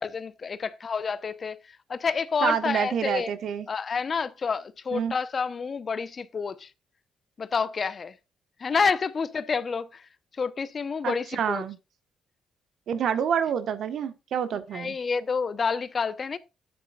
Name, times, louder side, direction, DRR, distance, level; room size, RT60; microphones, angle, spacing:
voice 1, 0.0-3.3 3.7-6.7 7.4-8.2 8.6-11.6 14.7-16.4, left 5 dB, 40° left, 0.8 m, -29 dB
voice 2, 2.4-3.7 4.9-5.1 11.0-11.8 12.9-14.9, right 8 dB, 65° right, 1.3 m, -27 dB
12.5 x 9.4 x 2.4 m
cardioid pair, 90°, 0 cm